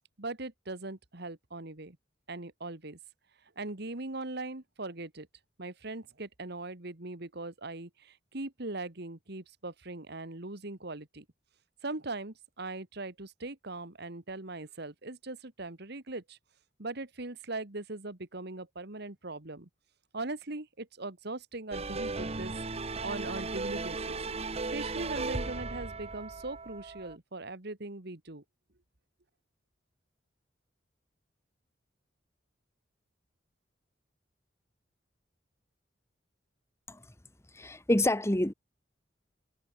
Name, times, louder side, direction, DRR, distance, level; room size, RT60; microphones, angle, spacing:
voice 1, 0.2-2.0 2.3-3.0 3.6-5.3 5.6-11.3 11.8-16.4 16.8-19.7 20.1-22.5 22.9-24.2 24.7-28.4, right 2 dB, 60° right, 2.2 m, -40 dB
sound 1, 21.7-27.2, right 3 dB, 35° right, 1.3 m, -36 dB
voice 2, 37.5-38.5, left 1 dB, 15° left, 1.6 m, -27 dB
head